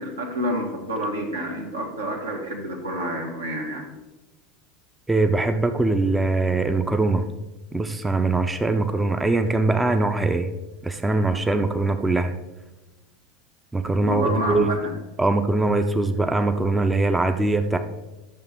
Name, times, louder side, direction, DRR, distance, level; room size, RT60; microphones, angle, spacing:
voice 1, 0.0-3.9 14.0-14.9, equal, 80° right, -1 dB, 1.5 m, -28 dB
voice 2, 5.1-7.3 7.7-10.5 10.8-12.3 13.7-14.7 15.2-17.8, right 2 dB, 10° right, 7 dB, 0.5 m, -22 dB
10.5 x 6.7 x 3.6 m, 1.1 s
figure-of-eight pair, 80°, 0 cm